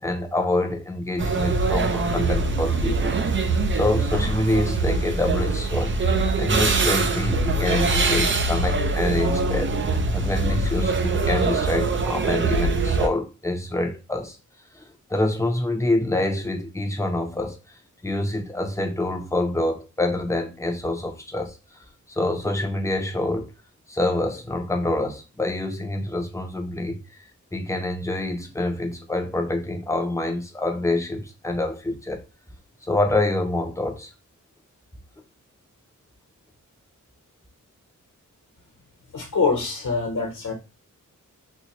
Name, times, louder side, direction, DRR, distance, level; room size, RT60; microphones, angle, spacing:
voice 1, 0.0-3.1 3.7-9.7 10.1-14.4 14.7-14.8 15.1-17.6 18.0-21.6 22.1-23.5 23.9-27.0 27.5-32.2 32.9-34.1, left 2 dB, 10° left, 0.7 m, -26 dB
sound 1, 1.2-13.1, right 3 dB, 40° right, 0.5 m, -23 dB
voice 2, 39.1-40.5, left 4 dB, 65° left, 1.1 m, -24 dB
4.3 x 2.3 x 2.9 m
wide cardioid pair, 110°, 32 cm